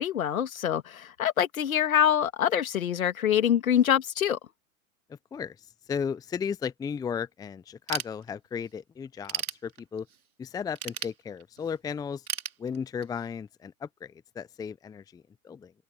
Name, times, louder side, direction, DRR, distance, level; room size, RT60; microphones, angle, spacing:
voice 1, 0.0-4.4, left 9 dB, 70° left, 2.8 m, -25 dB
voice 2, 5.1-10.1 10.4-12.3 12.6-15.7, left 6 dB, 10° left, 0.7 m, -35 dB
Ratchet pawl / Tools, 7.9-8.7 9.1-10.2 10.8-11.7 12.3-13.2, right 8 dB, 80° right, 2.8 m, -35 dB
open air
hypercardioid pair, 110°, 43 cm